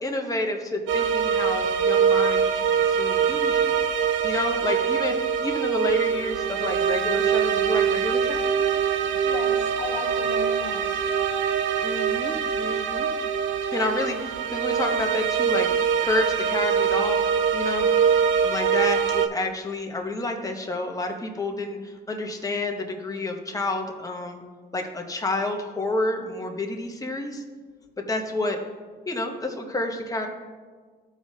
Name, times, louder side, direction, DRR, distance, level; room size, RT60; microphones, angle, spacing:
voice 1, 0.0-3.8 4.2-8.4 11.8-13.1 13.7-15.7 16.0-17.9 18.4-24.4 24.7-27.4 28.1-28.6 29.0-30.3, left 2 dB, 15° left, 2 dB, 1.2 m, -29 dB
sound 1, 0.9-19.3, right 7 dB, 70° right, 0.6 m, -23 dB
voice 2, 9.0-11.1, left 3 dB, 40° left, -9 dB, 2.0 m, -36 dB
14.0 x 4.8 x 2.8 m, 1.5 s
cardioid pair, 90°, 20 cm